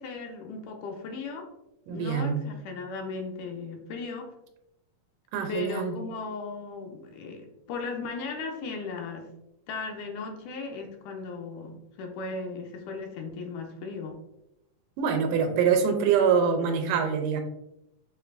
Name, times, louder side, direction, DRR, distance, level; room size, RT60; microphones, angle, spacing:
voice 1, 0.0-1.5 1.9-4.3 5.5-9.3 9.7-14.2, left 4 dB, 80° left, 3 dB, 2.0 m, -37 dB
voice 2, 1.9-2.4 5.3-5.9 15.0-17.4, right 6 dB, 85° right, 5 dB, 2.1 m, -24 dB
6.4 x 2.6 x 2.5 m, 0.86 s
omnidirectional pair, 3.7 m